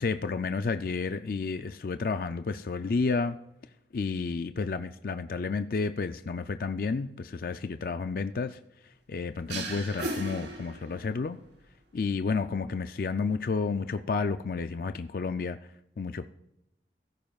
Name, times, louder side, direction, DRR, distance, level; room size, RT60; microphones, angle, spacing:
voice 1, 0.0-3.4 3.9-8.6 9.1-11.4 11.9-15.6 16.0-16.3, left 4 dB, 50° left, 10 dB, 0.4 m, -31 dB
sound 1, 9.5-11.3, right 2 dB, 85° right, 4.5 m, -36 dB
15.5 x 13.5 x 2.4 m, 0.84 s
head